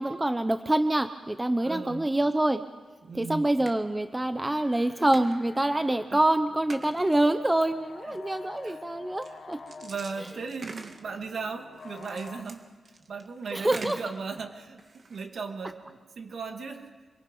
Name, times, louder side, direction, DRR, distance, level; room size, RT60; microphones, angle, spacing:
voice 1, 0.0-2.6 3.1-9.6 13.5-14.0, right 1 dB, 10° right, 9 dB, 0.7 m, -26 dB
voice 2, 1.6-2.1 3.0-3.5 6.1-6.2 8.6-8.8 9.8-12.6 13.1-14.8 15.1-16.9, right 4 dB, 55° right, 4 dB, 2.4 m, -37 dB
sound 1, 3.7-3.8 4.5-4.6 5.1-5.4 5.9-6.0 6.7-7.3 8.1-8.2 9.2-11.2 11.7-14.3 14.8-15.2, right 3 dB, 40° right, 1.8 m, -45 dB
sound 2, 4.2-12.4, left 4 dB, 50° left, 2.1 m, -48 dB
26.5 x 24.0 x 5.5 m, 1.3 s
wide cardioid pair, 145°, 0 cm